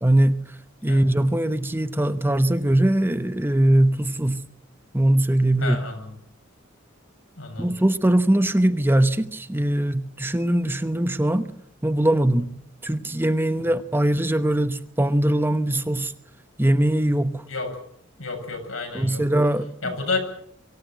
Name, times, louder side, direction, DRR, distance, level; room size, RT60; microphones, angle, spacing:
voice 1, 0.0-4.5 4.9-5.8 7.6-11.5 11.8-12.5 12.8-16.1 16.6-17.5 18.9-19.9, right 1 dB, 10° right, 0.9 m, -21 dB
voice 2, 5.6-6.0 7.4-7.7 17.5-17.7 18.2-19.2 19.8-20.2, left 3 dB, 90° left, 7.4 m, -30 dB
24.5 x 15.0 x 9.2 m
head